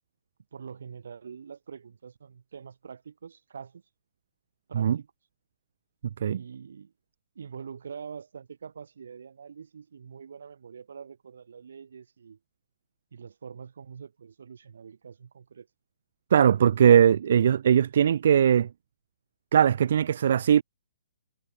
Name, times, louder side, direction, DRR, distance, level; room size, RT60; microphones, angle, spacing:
voice 1, 0.5-3.8 4.7-5.1 6.2-6.9 7.4-12.4 13.1-15.7, right 6 dB, 75° right, 3.8 m, -44 dB
voice 2, 16.3-18.7 19.5-20.6, right 9 dB, 60° right, 0.3 m, -20 dB
hypercardioid pair, 160°, 0 cm